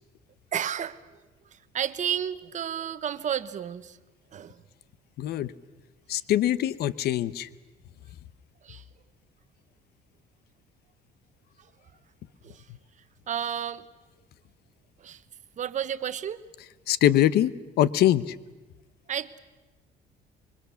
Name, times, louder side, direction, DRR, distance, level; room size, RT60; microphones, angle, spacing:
voice 1, 0.5-1.0 1.5-4.0 4.3-4.6 8.6-8.8 11.6-11.7 12.4-12.7 13.3-13.8 15.0-15.2 15.6-16.4 19.1-19.4, right 9 dB, 45° right, 13 dB, 1.1 m, -32 dB
voice 2, 5.2-5.5 6.1-7.5 16.9-17.5 17.8-18.4, left 12 dB, 70° left, 18 dB, 0.9 m, -23 dB
27.0 x 23.5 x 7.0 m, 1.2 s
cardioid pair, 110°, 17 cm